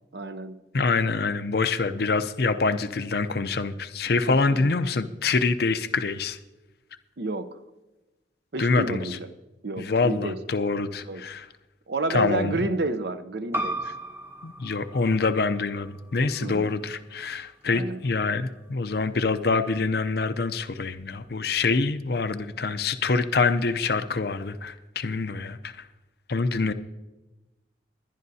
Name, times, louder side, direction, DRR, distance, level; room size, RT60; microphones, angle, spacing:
voice 1, 0.1-0.6 4.3-4.7 7.2-7.6 8.5-9.3 9.6-10.4 11.0-11.2 11.9-13.8 16.4-16.7 17.6-18.0, right 2 dB, 60° right, 11 dB, 0.7 m, -30 dB
voice 2, 0.7-6.4 8.6-9.0 9.8-11.5 12.1-12.6 14.4-25.7 26.3-26.7, left 4 dB, 55° left, 11 dB, 0.6 m, -25 dB
sound 1, 13.5-18.7, right 1 dB, 15° right, 0.9 m, -37 dB
21.5 x 10.5 x 2.8 m, 1.1 s
head